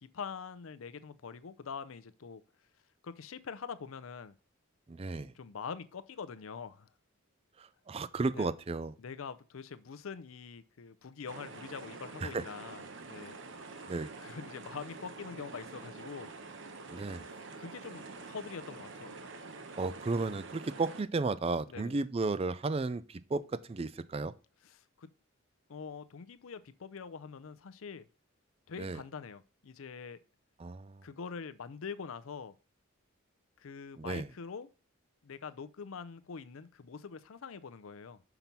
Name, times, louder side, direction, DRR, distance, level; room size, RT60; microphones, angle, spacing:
voice 1, 0.0-2.4 3.0-4.4 5.3-6.9 8.3-8.5 9.0-13.4 14.2-16.3 17.6-19.2 21.7-22.0 24.6-25.1 25.7-28.1 28.7-30.2 31.0-32.6 33.6-34.7 35.2-38.2, left 5 dB, 75° left, 0.5 m, -44 dB
voice 2, 4.9-5.3 7.6-8.9 12.2-12.4 13.9-14.1 16.9-17.2 19.8-24.3 28.8-29.0 30.6-31.0 34.0-34.3, right 3 dB, 30° right, 0.4 m, -34 dB
sound 1, 11.3-21.0, right 3 dB, 60° right, 1.0 m, -47 dB
5.9 x 5.8 x 5.3 m
head